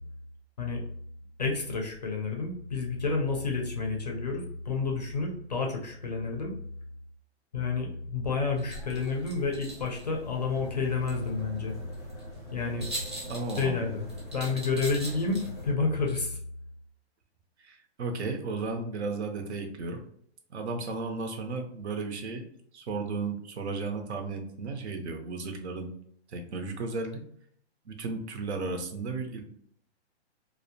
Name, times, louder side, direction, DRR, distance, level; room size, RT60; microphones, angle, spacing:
voice 1, 1.4-6.5 7.5-11.7 12.5-12.9 13.6-16.4, left 4 dB, 40° left, 1 dB, 0.4 m, -30 dB
sound 1, 8.5-15.7, right 1 dB, 25° right, 0.4 m, -43 dB
sound 2, 10.4-15.7, equal, 5° left, 0.7 m, -45 dB
voice 2, 13.3-13.9 17.6-20.0 20.5-22.4 22.7-25.9 26.3-27.2 27.9-29.4, right 3 dB, 75° right, 4 dB, 0.7 m, -34 dB
2.6 x 2.0 x 2.6 m, 0.66 s
hypercardioid pair, 180°, 34 cm